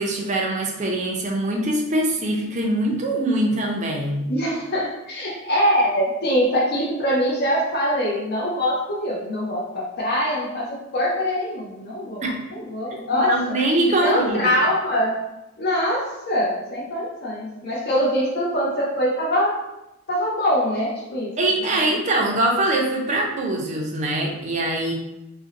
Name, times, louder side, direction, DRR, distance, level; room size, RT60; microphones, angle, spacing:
voice 1, 0.0-4.3 12.2-12.3 13.1-14.5 21.4-24.9, right 1 dB, 30° right, 0 dB, 0.4 m, -23 dB
voice 2, 4.3-13.4 14.0-15.2 15.6-19.6 20.1-21.3 21.7-21.8, equal, 45° left, -4 dB, 0.5 m, -23 dB
2.5 x 2.1 x 3.8 m, 0.92 s
head